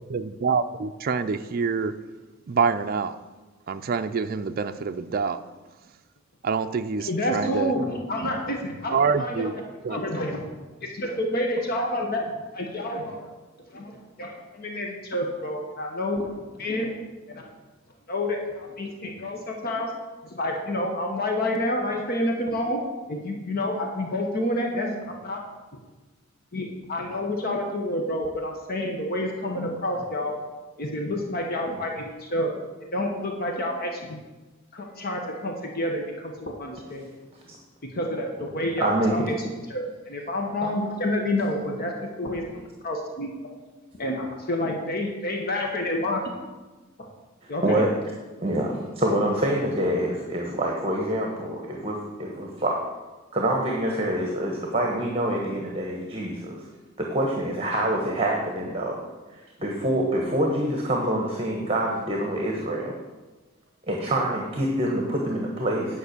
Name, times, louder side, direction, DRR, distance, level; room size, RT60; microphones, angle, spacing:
voice 1, 0.1-1.9 2.5-3.2 3.7-5.4 6.4-7.7 8.9-9.5 9.8-10.0, right 5 dB, 45° right, 9 dB, 0.4 m, -26 dB
voice 2, 7.0-9.6 9.9-10.5 10.8-13.3 13.7-16.9 17.3-17.5 18.1-19.9 20.2-22.8 23.1-25.4 26.5-30.3 30.8-32.5 32.9-34.2 34.7-37.1 37.8-41.9 42.2-42.4 42.8-43.3 44.0-46.2 47.5-47.8, left 1 dB, 50° left, 1 dB, 1.1 m, -29 dB
voice 3, 38.8-39.2 40.6-40.7 41.7-41.8 42.5-42.6 47.4-47.9 48.4-52.8 53.3-56.6 57.0-59.0 59.6-62.9 63.9-66.0, right 1 dB, 30° right, 0 dB, 1.2 m, -26 dB
9.7 x 5.3 x 6.6 m, 1.2 s
head